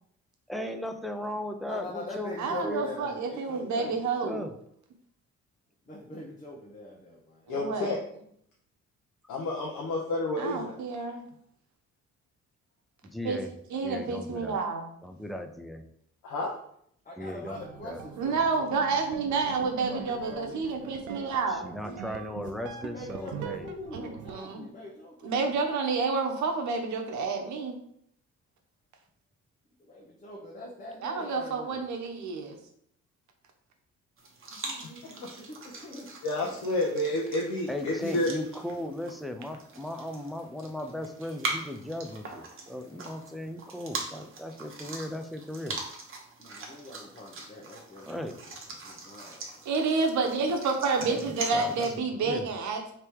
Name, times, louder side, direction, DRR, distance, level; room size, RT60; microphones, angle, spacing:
voice 1, 0.5-2.9 3.7-4.5 13.0-13.5 13.8-14.6 15.0-15.8 17.2-18.0 21.5-23.7 37.7-45.8 48.1-48.4 51.0-51.9 52.2-52.5, left 1 dB, ahead, 6 dB, 0.4 m, -37 dB
voice 2, 1.7-4.1 5.9-7.5 17.0-18.7 19.4-21.3 22.9-25.6 29.8-31.8 34.6-36.1 46.4-48.1 48.8-49.7, left 2 dB, 25° left, -3 dB, 0.9 m, -43 dB
voice 3, 2.4-4.5 7.5-8.0 10.4-11.2 13.2-13.4 13.7-14.9 18.2-21.6 23.9-24.7 25.2-27.8 31.0-32.6 49.7-52.8, right 4 dB, 70° right, 3 dB, 0.9 m, -29 dB
voice 4, 7.5-8.0 9.3-10.7 16.2-16.5 36.2-38.3, left 1 dB, 85° left, -2 dB, 0.8 m, -29 dB
sound 1, 17.5-24.4, right 7 dB, 85° right, 0.5 m, -42 dB
sound 2, 34.2-52.0, right 3 dB, 45° right, 1.0 m, -42 dB
3.3 x 2.9 x 4.6 m, 0.68 s
cardioid pair, 90°, 30 cm